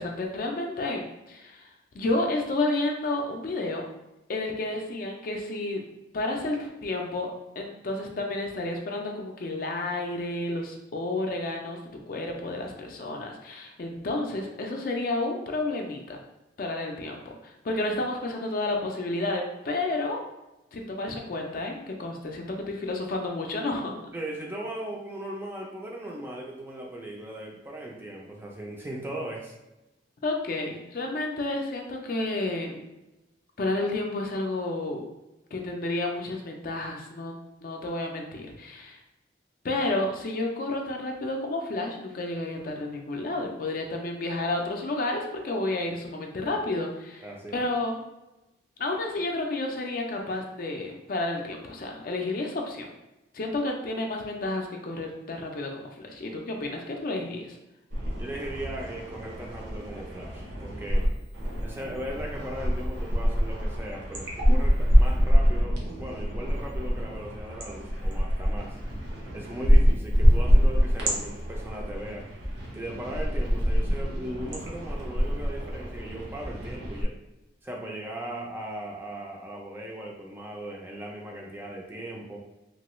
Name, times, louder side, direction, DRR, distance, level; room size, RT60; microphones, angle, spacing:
voice 1, 0.0-1.7 1.9-3.8 4.3-5.8 6.1-7.3 7.6-11.8 12.1-16.2 16.6-20.2 20.7-24.0 30.2-32.8 33.6-35.0 35.5-37.4 37.6-39.0 39.6-47.2 47.5-48.0 48.8-52.9 53.3-57.6, left 2 dB, 50° left, 2 dB, 0.4 m, -31 dB
voice 2, 24.1-29.5 47.2-47.7 58.2-61.1 61.6-68.8 69.3-72.3 72.7-77.1 77.6-82.4, right 1 dB, 10° right, -1 dB, 0.4 m, -38 dB
sound 1, 57.9-61.1 61.3-77.0, equal, 70° right, 0.8 m, -25 dB
2.9 x 2.3 x 3.0 m, 0.97 s
head